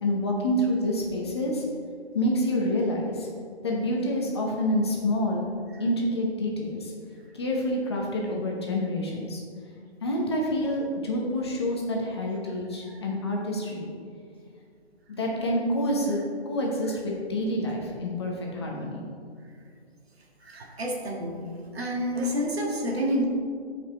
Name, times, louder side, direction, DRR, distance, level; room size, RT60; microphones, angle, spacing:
voice 1, 0.0-1.7 2.1-3.3 3.6-5.5 5.8-6.9 7.3-9.4 10.0-13.9 15.2-16.2 16.5-19.0, left 1 dB, 25° left, -2 dB, 0.8 m, -27 dB
voice 2, 20.4-21.5 21.7-23.2, equal, 65° right, 0 dB, 1.7 m, -29 dB
12.5 x 5.1 x 3.3 m, 2.2 s
hypercardioid pair, 160°, 33 cm